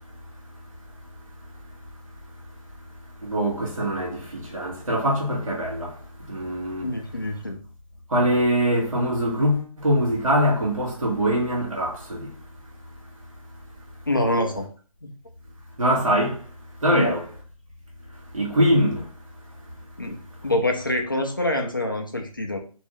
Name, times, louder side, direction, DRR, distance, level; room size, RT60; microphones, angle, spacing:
voice 1, 3.2-6.0 6.3-6.9 8.1-12.3 15.8-16.4 16.8-17.3 18.3-19.1, equal, 60° right, 1.6 m, -23 dB
voice 2, 6.8-7.6 14.1-14.7 15.0-15.1 16.9-17.2 20.0-22.6, left 1 dB, 35° left, 0.4 m, -26 dB
3.0 x 2.6 x 3.1 m
figure-of-eight pair, 175°, 19 cm